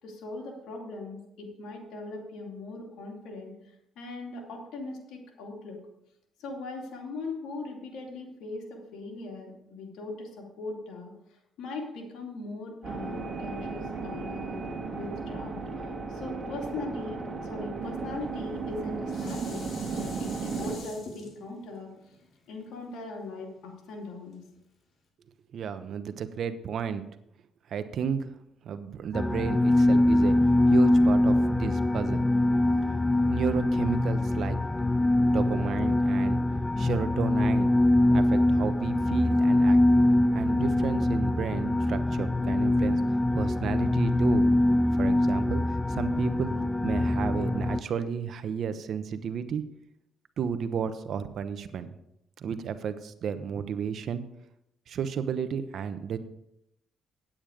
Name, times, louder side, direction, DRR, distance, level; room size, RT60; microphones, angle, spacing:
voice 1, 0.0-3.5 4.0-5.8 6.4-15.6 16.1-19.7 19.9-21.9 22.5-24.4, left 3 dB, 85° left, 0 dB, 2.5 m, -40 dB
sound 1, 12.8-20.8, right 4 dB, 40° right, 1.9 m, -35 dB
Dishes pots and pans, 18.5-23.8 24.3-24.4, left 4 dB, 60° left, 2.8 m, -47 dB
voice 2, 25.5-27.0 27.7-28.3 28.6-30.4 30.7-32.2 33.3-34.6 35.3-36.4 36.8-39.8 40.3-43.0 43.3-44.5 45.0-49.6 50.4-51.9 52.4-54.2 54.9-56.2, right 7 dB, 65° right, 11 dB, 0.9 m, -32 dB
sound 2, 29.1-47.8, left 1 dB, 15° left, 0.3 m, -23 dB
9.1 x 8.8 x 5.0 m, 0.82 s
cardioid pair, 90°, 0 cm